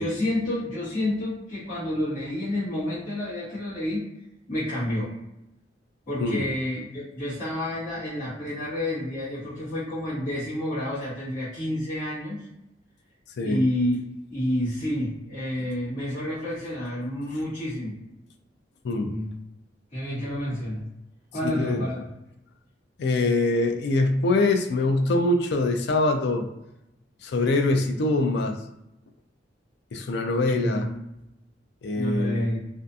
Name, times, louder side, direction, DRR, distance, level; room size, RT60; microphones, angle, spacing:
voice 1, 0.0-4.1 4.5-5.1 6.1-12.4 13.4-14.0 14.3-18.0 19.1-19.4 19.9-20.8 21.3-22.0 30.6-31.0 31.9-32.6, left 1 dB, 40° left, -12 dB, 1.2 m, -29 dB
voice 2, 21.4-21.9 23.0-26.5 27.2-28.6 29.9-30.9 31.8-32.4, left 2 dB, 65° left, 6 dB, 0.4 m, -23 dB
2.6 x 2.4 x 2.3 m, 0.88 s
head